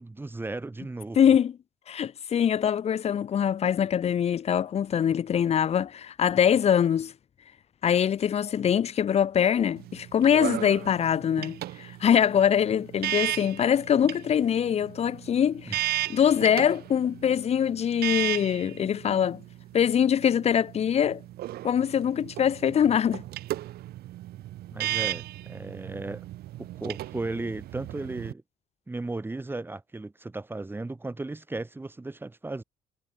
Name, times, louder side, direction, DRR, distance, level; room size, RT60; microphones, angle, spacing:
voice 1, 0.0-1.4 15.7-15.8 24.7-26.2 26.6-28.4 28.9-32.6, right 2 dB, 10° right, 1.5 m, -35 dB
voice 2, 1.2-1.6 1.9-7.1 7.8-19.4 19.7-21.2 21.6-23.2, left 8 dB, 40° left, 0.7 m, -23 dB
sound 1, 9.8-28.3, right 15 dB, 65° right, 0.8 m, -35 dB
cardioid pair, 110°, 17 cm